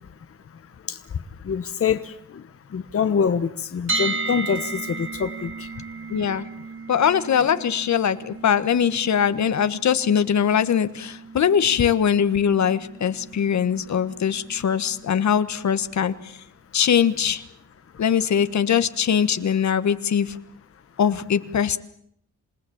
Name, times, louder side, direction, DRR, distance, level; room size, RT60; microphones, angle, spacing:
voice 1, 1.4-2.1 2.7-5.7, left 6 dB, 45° left, 10 dB, 1.2 m, -25 dB
sound 1, 3.9-15.8, right 3 dB, 40° right, 2.9 m, -35 dB
voice 2, 6.1-6.5 6.9-16.4 16.7-17.4 18.0-20.4 21.0-21.8, left 8 dB, 65° left, 12 dB, 1.5 m, -21 dB
28.0 x 18.5 x 8.7 m, 0.70 s
cardioid pair, 110°, 31 cm